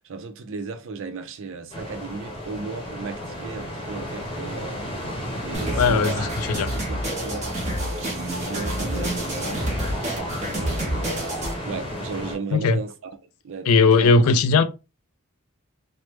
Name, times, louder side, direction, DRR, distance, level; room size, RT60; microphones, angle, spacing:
voice 1, 0.0-9.8 10.4-11.3 11.6-13.2 13.4-14.2, right 4 dB, 65° right, 0.5 m, -36 dB
sound 1, 1.7-12.4, equal, 25° left, 0.9 m, -33 dB
sound 2, 5.5-11.5, right 1 dB, 35° right, 0.9 m, -29 dB
voice 2, 5.8-6.7 12.5-12.8 13.7-14.6, left 4 dB, 75° left, 0.4 m, -18 dB
3.1 x 2.0 x 3.1 m
head